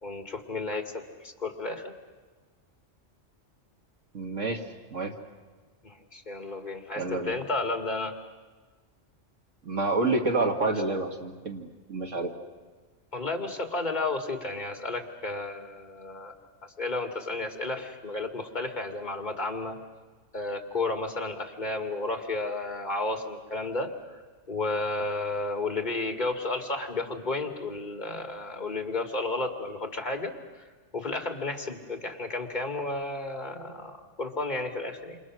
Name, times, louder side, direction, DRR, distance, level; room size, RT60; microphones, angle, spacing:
voice 1, 0.0-1.9 5.8-8.1 13.1-16.3 16.6-19.8 20.3-23.9 24.5-30.7 30.9-35.2, left 2 dB, 35° left, 4 dB, 2.4 m, -32 dB
voice 2, 4.1-4.6 4.9-5.1 7.0-7.3 9.6-12.3, right 3 dB, 75° right, 2 dB, 2.6 m, -28 dB
28.0 x 27.0 x 6.3 m, 1.4 s
omnidirectional pair, 1.3 m